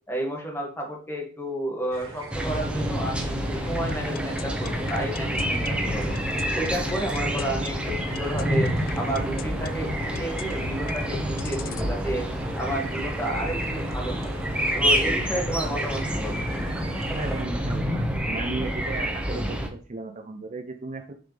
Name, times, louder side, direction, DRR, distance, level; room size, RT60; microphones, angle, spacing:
voice 1, 0.1-6.2 6.5-12.3 12.6-14.4 14.7-16.6, right 1 dB, 10° left, 0 dB, 2.1 m, -31 dB
sound 1, 1.9-17.4, right 1 dB, 75° right, 1.6 m, -42 dB
sound 2, 2.3-19.7, equal, 5° right, 1.0 m, -28 dB
sound 3, 3.9-11.9, left 6 dB, 45° left, 0.4 m, -38 dB
voice 2, 17.1-21.1, right 3 dB, 35° right, 6 dB, 0.6 m, -35 dB
6.8 x 5.9 x 3.4 m, 0.40 s
head